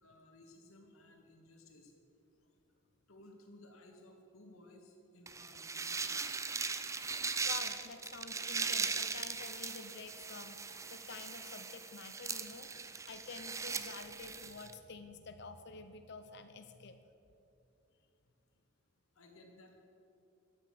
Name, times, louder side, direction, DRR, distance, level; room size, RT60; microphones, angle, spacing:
voice 1, 0.0-1.9 3.1-6.3 19.2-19.8, left 1 dB, 80° left, 2 dB, 2.2 m, -58 dB
sound 1, 5.3-14.7, right 4 dB, 15° right, 0.5 m, -39 dB
voice 2, 7.4-12.7 13.0-17.0, left 4 dB, 55° left, 8 dB, 0.7 m, -49 dB
13.5 x 9.9 x 8.0 m, 2.8 s
head